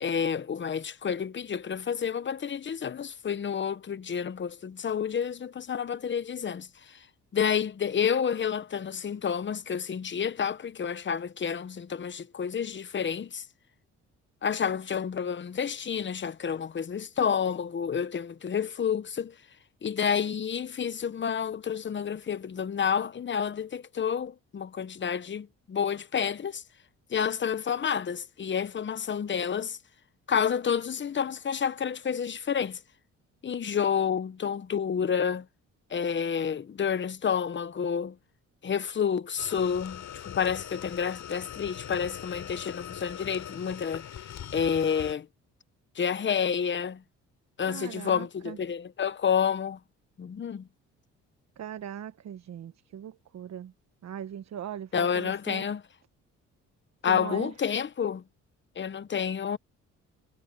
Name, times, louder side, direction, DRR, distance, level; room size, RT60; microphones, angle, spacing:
voice 1, 0.0-7.1 7.3-13.5 14.4-19.4 19.8-26.6 27.1-29.8 30.3-32.8 33.4-35.5 35.9-38.2 38.6-45.3 45.9-47.0 47.6-49.8 50.2-50.7 54.9-55.8 57.0-58.2 58.8-59.6, left 7 dB, 40° left, 1.1 m, -29 dB
sound 1, 39.4-45.1, left 10 dB, 65° left, 7.8 m, -41 dB
voice 2, 47.7-48.6 51.6-53.7 54.0-55.7 57.0-57.5, right 9 dB, 60° right, 1.3 m, -40 dB
cardioid pair, 90°, 30 cm